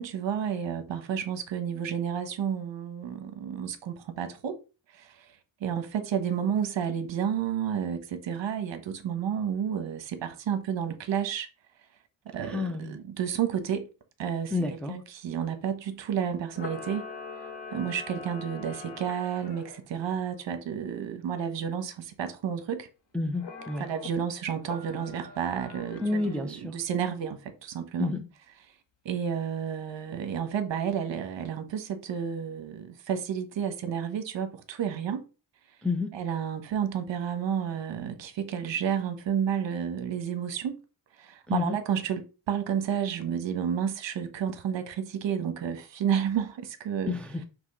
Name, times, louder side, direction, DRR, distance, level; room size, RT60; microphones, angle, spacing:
voice 1, 0.0-4.6 4.9-5.3 5.6-11.5 12.3-13.9 14.2-17.1 17.7-22.9 23.8-28.1 29.0-35.2 36.1-40.7 41.2-47.1, right 8 dB, 65° right, 1.2 m, -31 dB
voice 2, 12.4-13.0 14.5-14.9 23.1-23.9 26.0-26.8 28.0-28.2 35.8-36.1 41.5-41.8 47.0-47.4, left 3 dB, ahead, 0.5 m, -29 dB
Camera, 16.5-19.8 23.4-24.1 24.6-26.4, left 4 dB, 60° left, 1.6 m, -43 dB
6.1 x 3.0 x 5.7 m
wide cardioid pair, 155°, 48 cm